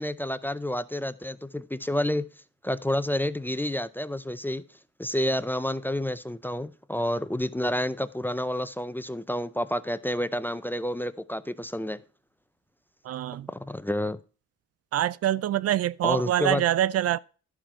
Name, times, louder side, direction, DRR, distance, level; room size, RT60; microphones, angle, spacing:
voice 1, 0.0-2.3 2.6-4.6 5.0-12.0 13.5-14.2 16.0-16.6, left 1 dB, 5° left, 0.5 m, -29 dB
voice 2, 13.0-13.5 14.9-17.2, right 12 dB, 55° right, 0.4 m, -25 dB
11.5 x 5.9 x 4.5 m
cardioid pair, 90°, 30 cm